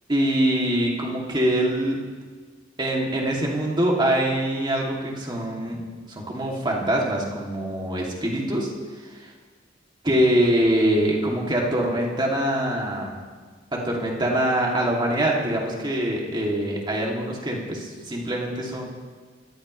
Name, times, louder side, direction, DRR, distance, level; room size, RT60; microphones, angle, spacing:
voice 1, 0.1-2.0 2.8-5.8 6.1-8.7 10.0-13.1 13.7-18.9, right 1 dB, 25° right, -2 dB, 2.7 m, -24 dB
25.5 x 14.5 x 3.3 m, 1.5 s
head